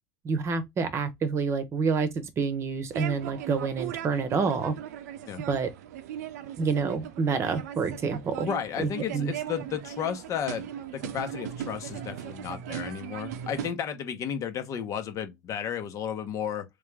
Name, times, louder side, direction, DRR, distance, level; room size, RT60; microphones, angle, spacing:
voice 1, 0.2-2.1 2.4-4.7 5.5-5.7 6.6-8.5 8.8-9.3, right 5 dB, 30° right, 1.0 m, -28 dB
sound 1, 2.9-13.7, right 10 dB, 90° right, 0.7 m, -38 dB
voice 2, 8.4-16.6, left 8 dB, 40° left, 1.0 m, -33 dB
3.3 x 3.2 x 3.5 m
supercardioid pair, 120°, 9 cm